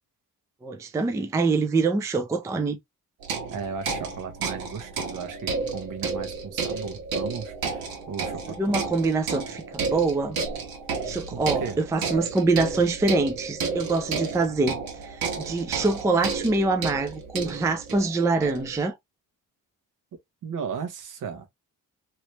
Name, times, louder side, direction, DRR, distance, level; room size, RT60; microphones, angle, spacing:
voice 1, 0.6-2.8 8.5-10.4 11.0-18.9, right 3 dB, 10° right, 0.3 m, -25 dB
sound 1, 3.2-18.8, right 4 dB, 85° right, 1.3 m, -32 dB
voice 2, 3.5-8.9 11.3-11.8 20.4-21.5, right 6 dB, 60° right, 1.1 m, -36 dB
3.2 x 3.0 x 2.8 m
cardioid pair, 165°, 35 cm